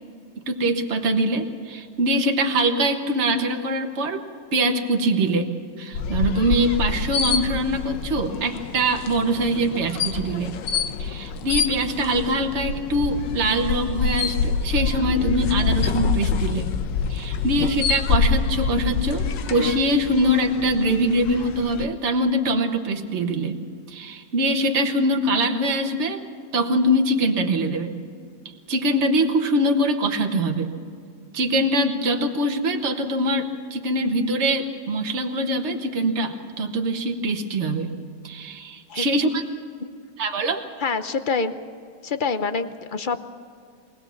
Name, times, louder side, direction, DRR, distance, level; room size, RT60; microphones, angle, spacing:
voice 1, 0.5-4.2 4.5-5.5 5.8-10.5 11.0-16.7 17.1-23.5 23.9-26.3 26.5-28.0 28.7-30.7 31.3-37.9 38.2-39.4 40.2-40.6, right 1 dB, 40° right, 4 dB, 1.5 m, -23 dB
sound 1, 5.9-21.9, left 6 dB, 85° left, 1.5 m, -26 dB
voice 2, 40.8-41.6 42.0-43.3, left 4 dB, 50° left, 10 dB, 0.6 m, -26 dB
23.5 x 18.0 x 7.1 m, 2.3 s
omnidirectional pair, 1.9 m